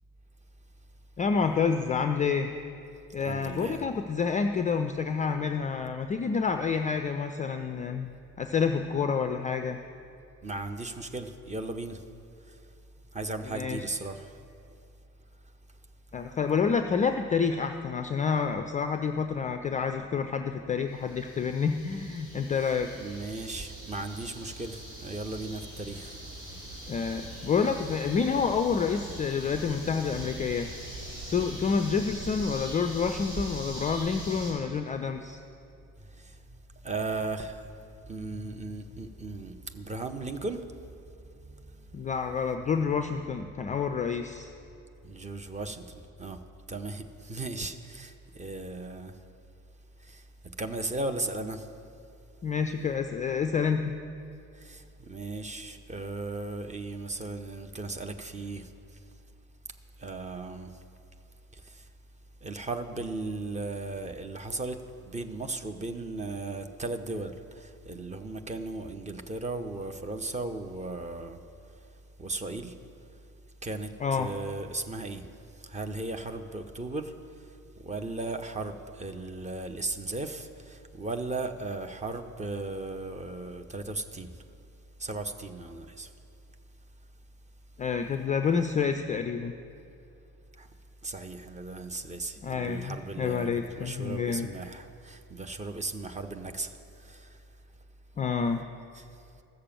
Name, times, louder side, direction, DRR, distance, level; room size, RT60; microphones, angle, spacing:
voice 1, 1.2-2.5 3.1-8.1 8.4-9.8 13.5-13.8 16.1-22.9 26.9-30.7 31.3-35.4 41.9-44.5 52.4-53.8 74.0-74.3 87.8-89.5 92.4-94.5 98.2-98.6, left 6 dB, 20° left, 0.4 m, -28 dB
voice 2, 3.2-3.9 10.4-12.0 13.1-14.3 22.5-26.2 36.2-36.4 36.8-37.7 38.0-40.6 45.0-46.4 46.7-49.1 50.0-50.2 50.6-51.7 54.6-58.7 60.0-60.7 61.7-61.8 62.4-64.8 65.1-71.4 72.2-72.7 73.6-75.2 75.6-77.1 77.8-84.3 85.0-86.1 90.6-90.7 91.0-97.3 98.9-99.1, right 2 dB, 15° right, 0.7 m, -36 dB
sound 1, 20.9-34.5, right 1 dB, 75° right, 3.7 m, -42 dB
15.0 x 6.7 x 7.2 m
figure-of-eight pair, 50°, 43 cm